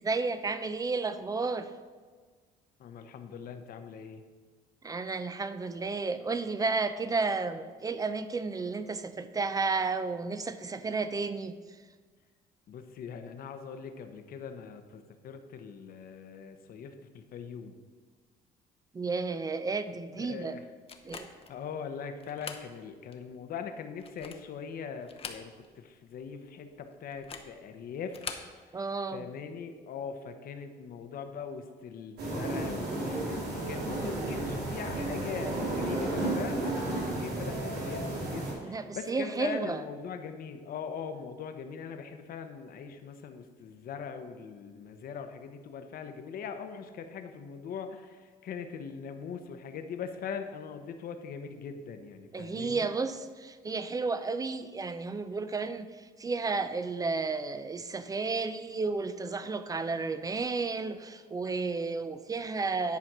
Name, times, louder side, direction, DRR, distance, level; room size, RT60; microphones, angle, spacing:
voice 1, 0.0-1.7 4.8-11.6 18.9-20.6 21.0-21.3 28.7-29.3 38.6-39.8 52.3-63.0, right 4 dB, 20° right, 11 dB, 0.5 m, -32 dB
voice 2, 2.8-4.2 12.7-17.8 20.2-20.6 21.2-28.3 29.1-52.9, left 6 dB, 60° left, 7 dB, 0.9 m, -41 dB
sound 1, 20.9-21.6 22.2-22.7 23.1-23.2 23.9-24.5 25.0-25.8 26.1-26.2 27.1-27.6 28.1-28.5, left 5 dB, 35° left, 0.8 m, -43 dB
sound 2, 32.2-38.5, right 2 dB, 75° right, 3.0 m, -33 dB
10.5 x 4.3 x 6.1 m, 1.5 s
cardioid pair, 110°, 17 cm